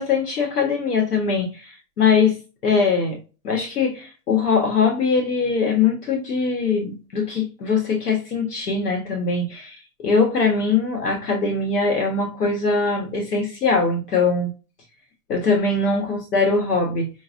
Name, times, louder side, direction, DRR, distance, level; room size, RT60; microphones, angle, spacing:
voice 1, 0.0-3.2 3.4-14.5 15.3-17.1, left 4 dB, 75° left, 1.5 m, -22 dB
5.8 x 2.4 x 2.6 m
hypercardioid pair, 170°, 46 cm